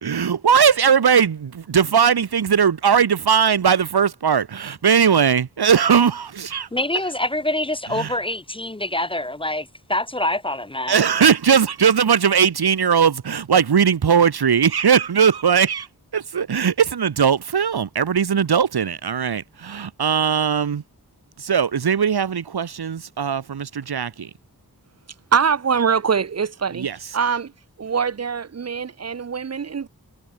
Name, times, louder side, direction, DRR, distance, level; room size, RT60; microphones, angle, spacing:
voice 1, 0.0-6.7 7.9-8.1 10.9-15.9 16.1-20.8 21.4-24.3 26.7-27.0, right 7 dB, 85° right, 1.2 m, -19 dB
voice 2, 6.7-11.0, left 1 dB, 15° left, 0.4 m, -25 dB
voice 3, 25.3-26.9 27.1-27.5 27.8-29.9, right 6 dB, 45° right, 0.6 m, -23 dB
wide cardioid pair, 80°, 37 cm